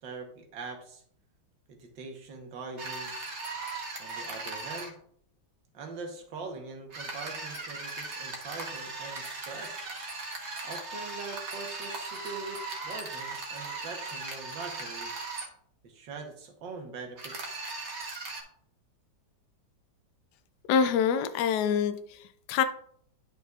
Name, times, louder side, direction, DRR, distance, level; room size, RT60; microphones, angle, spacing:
voice 1, 0.0-1.0 1.7-3.4 4.0-5.0 5.7-9.9 10.6-15.2 15.8-17.7, right 4 dB, 70° right, 1.9 m, -42 dB
sound 1, 2.8-4.9 6.9-15.5 17.2-18.4, right 3 dB, 40° right, 1.2 m, -38 dB
voice 2, 20.7-22.6, left 7 dB, 70° left, 1.1 m, -26 dB
11.0 x 5.4 x 2.4 m
omnidirectional pair, 2.1 m